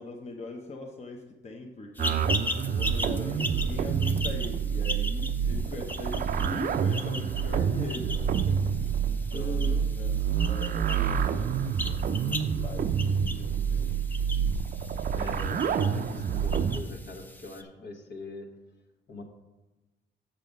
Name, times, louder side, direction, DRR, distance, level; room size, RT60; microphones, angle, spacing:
voice 1, 0.0-14.0, left 2 dB, 35° left, 1 dB, 0.9 m, -42 dB
sound 1, 2.0-17.6, left 1 dB, 10° left, 0.6 m, -39 dB
sound 2, 2.0-16.8, right 7 dB, 45° right, 0.4 m, -28 dB
voice 2, 9.3-9.9 15.1-18.5 19.1-19.2, left 2 dB, 60° left, 3 dB, 1.4 m, -41 dB
6.8 x 5.7 x 5.3 m, 1.1 s
cardioid pair, 90°, 20 cm